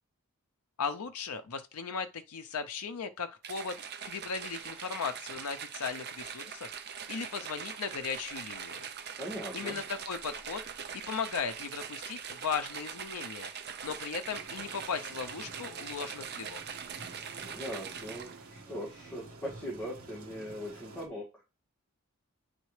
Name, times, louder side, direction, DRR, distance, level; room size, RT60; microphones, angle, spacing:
voice 1, 0.8-3.8 4.0-6.7 7.1-8.8 9.5-10.6 10.9-13.5 13.8-16.6, left 6 dB, 85° left, 0.6 m, -37 dB
sound 1, 3.4-18.5, right 7 dB, 45° right, 0.6 m, -42 dB
voice 2, 9.2-9.8 17.3-21.3, equal, 10° left, 1.9 m, -40 dB
sound 2, 14.3-21.1, right 3 dB, 75° right, 1.6 m, -50 dB
9.2 x 4.0 x 3.2 m
head